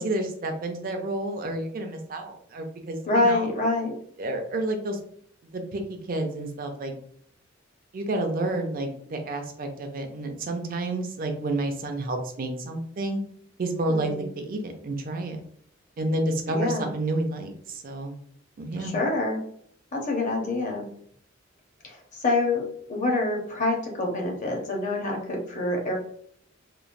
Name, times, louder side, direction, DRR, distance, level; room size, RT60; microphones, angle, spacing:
voice 1, 0.0-3.5 4.2-5.0 5.5-6.9 7.9-13.2 13.6-15.4 16.0-18.2 18.6-18.9, right 2 dB, 45° right, 5 dB, 0.5 m, -30 dB
voice 2, 3.1-3.9 13.9-14.3 16.5-16.9 18.8-19.4 19.9-20.9 21.8-22.0 22.2-22.6 22.9-26.0, left 2 dB, 40° left, 1 dB, 0.7 m, -26 dB
3.0 x 2.0 x 2.5 m, 0.63 s
head